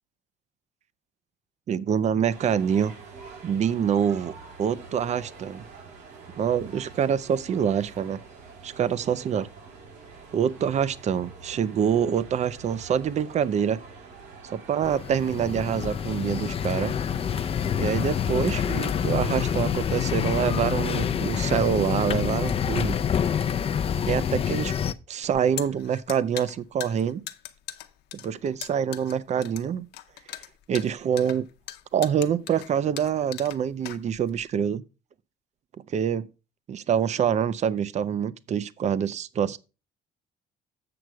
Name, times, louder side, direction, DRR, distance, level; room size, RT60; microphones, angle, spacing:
voice 1, 1.7-2.9 3.4-4.3 4.6-5.6 6.4-8.2 8.6-9.5 10.3-13.8 14.4-16.9 17.7-23.0 24.0-24.7 25.1-27.2 28.2-29.9 30.7-31.5 31.9-34.8 35.9-36.3 36.7-39.6, right 8 dB, 45° right, 0.6 m, -26 dB
sound 1, 2.3-19.6, right 4 dB, 85° right, 6.1 m, -46 dB
sound 2, 14.8-24.9, left 8 dB, 35° left, 0.5 m, -27 dB
sound 3, 25.2-34.4, left 13 dB, 80° left, 0.9 m, -40 dB
7.9 x 6.3 x 4.6 m
cardioid pair, 110°, 17 cm